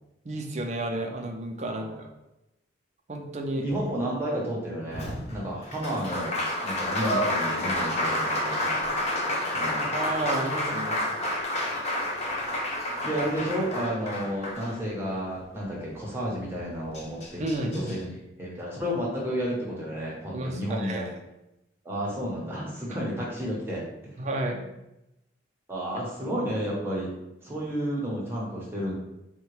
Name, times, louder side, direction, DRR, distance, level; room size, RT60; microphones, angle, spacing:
voice 1, 0.2-2.1 3.1-3.6 9.9-11.0 17.4-17.9 20.3-21.1 24.2-24.6, right 1 dB, 35° right, 2 dB, 0.4 m, -31 dB
voice 2, 3.6-6.3 6.6-8.8 9.5-9.9 13.0-21.1 21.8-24.2 25.7-27.1 27.4-28.9, equal, 10° right, -4 dB, 0.7 m, -32 dB
Applause, 4.9-15.2 16.6-16.7 16.9-18.0, left 1 dB, 35° left, 0.5 m, -29 dB
3.7 x 2.2 x 3.0 m, 0.90 s
head